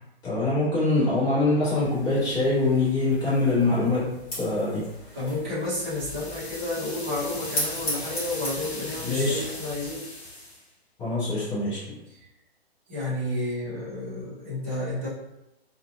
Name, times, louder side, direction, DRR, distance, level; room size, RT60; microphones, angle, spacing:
voice 1, 0.2-4.9 9.0-9.5 11.0-12.0, left 2 dB, 15° left, -10 dB, 0.7 m, -24 dB
sound 1, 1.8-10.0, equal, 35° left, 1.2 m, -38 dB
voice 2, 5.1-10.0 12.1-12.2 12.9-15.1, left 2 dB, 15° right, -8 dB, 0.4 m, -31 dB
sound 2, 5.6-10.7, left 2 dB, 85° left, 0.6 m, -39 dB
2.6 x 2.1 x 2.3 m, 0.92 s
figure-of-eight pair, 125°, 32 cm